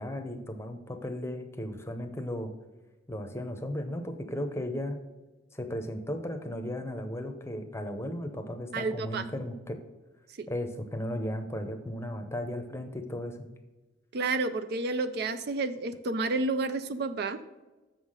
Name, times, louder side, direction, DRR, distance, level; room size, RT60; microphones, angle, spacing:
voice 1, 0.0-2.5 3.1-5.0 5.5-9.8 10.5-13.5, left 1 dB, 15° left, 6 dB, 0.7 m, -35 dB
voice 2, 8.7-9.2 10.4-10.5 14.1-17.4, right 3 dB, 50° right, 11 dB, 0.4 m, -30 dB
7.1 x 5.7 x 6.4 m, 1.2 s
head